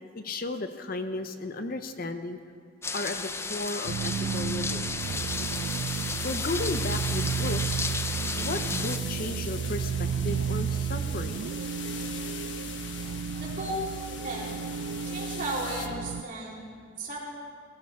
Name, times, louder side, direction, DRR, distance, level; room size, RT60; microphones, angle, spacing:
voice 1, 0.1-2.4 2.9-4.9 6.2-7.8 8.3-11.5, left 2 dB, 50° left, 8 dB, 0.7 m, -34 dB
sound 1, 2.8-9.0, left 4 dB, 15° left, 0.4 m, -33 dB
sound 2, 3.9-16.2, right 6 dB, 85° right, 0.3 m, -32 dB
sound 3, 5.0-15.9, left 7 dB, 75° left, 1.1 m, -41 dB
voice 2, 13.4-14.6 15.0-17.2, right 1 dB, 45° right, -5 dB, 3.6 m, -35 dB
21.0 x 15.5 x 3.6 m, 2.1 s
head